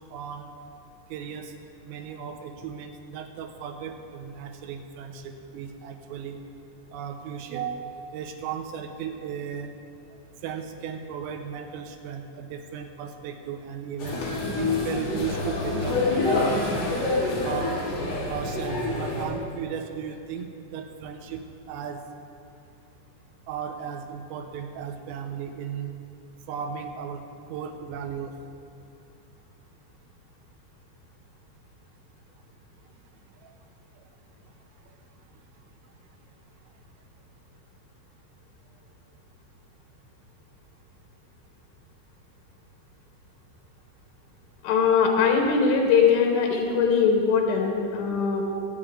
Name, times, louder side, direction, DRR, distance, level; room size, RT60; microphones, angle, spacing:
voice 1, 0.1-0.5 1.1-1.5 1.9-6.4 6.9-9.7 10.4-14.2 14.6-16.8 17.4-17.7 18.3-22.0 23.5-25.9 26.5-27.2 27.5-28.3 33.4-33.5, right 7 dB, 85° right, 5 dB, 3.2 m, -36 dB
sound 1, 14.0-19.3, left 2 dB, 70° left, 4.4 m, -26 dB
voice 2, 44.6-48.4, left 6 dB, 90° left, 1 dB, 3.7 m, -21 dB
21.5 x 8.5 x 3.7 m, 2.6 s
omnidirectional pair, 5.3 m